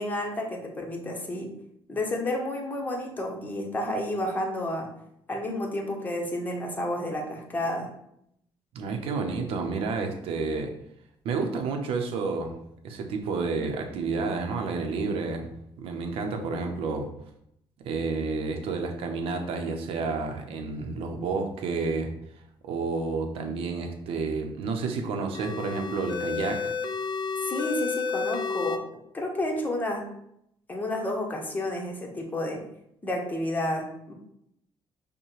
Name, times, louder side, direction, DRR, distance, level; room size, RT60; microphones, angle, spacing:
voice 1, 0.0-1.5 1.9-4.9 5.3-7.9 27.4-28.8 29.1-30.1 30.7-32.6 33.0-34.1, left 1 dB, 20° left, 0 dB, 0.9 m, -31 dB
voice 2, 8.7-10.7 11.2-12.6 12.8-17.1 17.8-22.1 22.6-26.7, right 4 dB, 75° right, 4 dB, 0.7 m, -30 dB
sound 1, 25.3-28.8, left 5 dB, 50° left, 0.4 m, -31 dB
5.5 x 2.2 x 3.2 m, 0.76 s
cardioid pair, 100°, 10 cm